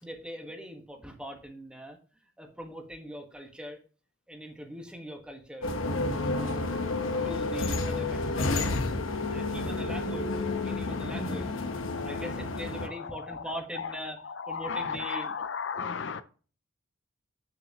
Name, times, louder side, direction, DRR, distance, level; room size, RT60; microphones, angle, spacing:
voice 1, 0.0-2.0 2.4-3.8 4.3-5.7 6.3-8.6 9.3-11.5 12.0-15.4, equal, 5° right, 1.3 m, -42 dB
sound 1, 5.6-12.9, left 2 dB, 85° left, 1.1 m, -30 dB
voice 2, 11.9-12.2 12.8-13.4 13.8-13.9 14.4-16.2, left 6 dB, 65° left, 0.6 m, -35 dB
8.9 x 7.1 x 2.9 m
head